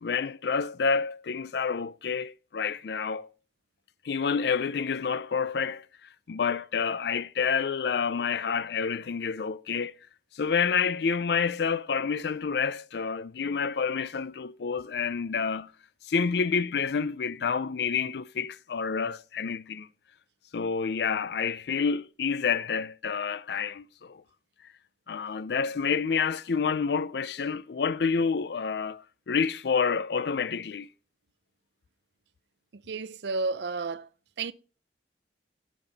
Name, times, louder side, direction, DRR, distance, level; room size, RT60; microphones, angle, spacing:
voice 1, 0.0-3.3 4.0-5.8 6.3-9.9 10.3-15.7 16.1-19.9 20.5-24.2 25.1-30.9, left 5 dB, 65° left, 0.4 m, -28 dB
voice 2, 32.7-34.1 34.4-34.5, right 3 dB, 75° right, 0.5 m, -32 dB
16.0 x 5.5 x 3.4 m
head